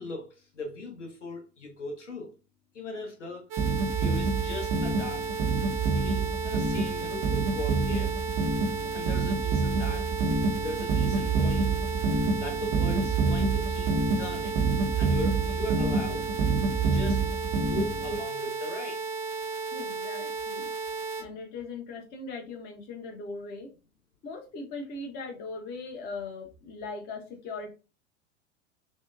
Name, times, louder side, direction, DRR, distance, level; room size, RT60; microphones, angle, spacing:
voice 1, 0.0-2.3 2.7-5.2 5.8-8.1 8.9-10.1 10.6-11.8 12.1-14.6 15.0-16.3 16.8-17.2 17.7-19.0, left 2 dB, 80° left, 0.8 m, -39 dB
sound 1, 3.5-21.2, right 4 dB, 55° right, 0.7 m, -34 dB
sound 2, 3.6-18.2, right 4 dB, 20° right, 0.4 m, -27 dB
voice 2, 19.7-20.9 21.2-23.7 24.2-27.7, left 3 dB, 25° left, 0.6 m, -39 dB
2.6 x 2.1 x 2.3 m
figure-of-eight pair, 80°, 36 cm